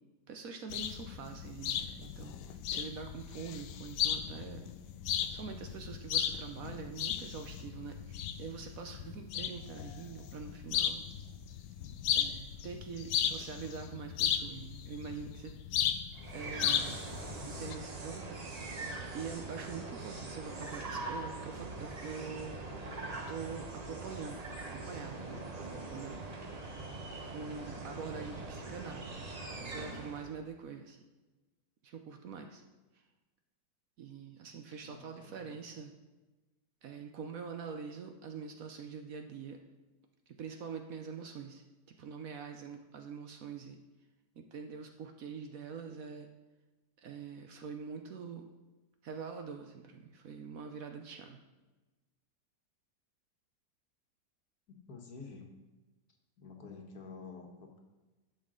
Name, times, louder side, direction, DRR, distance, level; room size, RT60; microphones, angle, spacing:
voice 1, 0.3-4.7 5.3-11.0 12.1-15.5 16.3-17.0 17.4-18.4 19.1-22.6 23.3-25.4 25.9-26.2 27.2-31.0 31.8-32.6 34.0-35.9 36.8-39.6 40.4-43.8 44.4-46.3 47.0-48.4 49.0-51.4, right 6 dB, 65° right, 5 dB, 1.0 m, -45 dB
sound 1, 0.7-17.8, left 9 dB, 80° left, 1.2 m, -36 dB
sound 2, 16.1-30.4, right 2 dB, 30° right, 0.8 m, -42 dB
voice 2, 34.8-35.5 54.7-55.5 56.4-57.8, left 4 dB, 65° left, 2 dB, 1.7 m, -49 dB
11.5 x 6.5 x 3.8 m, 1.2 s
omnidirectional pair, 1.8 m